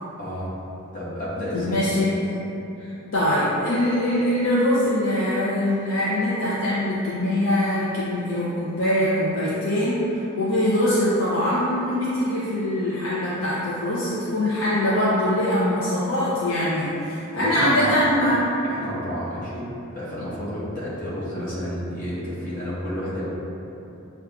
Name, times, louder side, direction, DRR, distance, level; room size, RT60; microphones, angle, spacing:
voice 1, 0.2-0.5 0.9-2.0 17.3-18.0 18.6-19.7 19.9-23.3, equal, 40° left, -10 dB, 1.3 m, -30 dB
voice 2, 1.5-2.2 2.8-10.0 10.3-18.4, left 1 dB, 65° left, -9 dB, 0.6 m, -23 dB
6.8 x 2.4 x 2.3 m, 2.9 s
head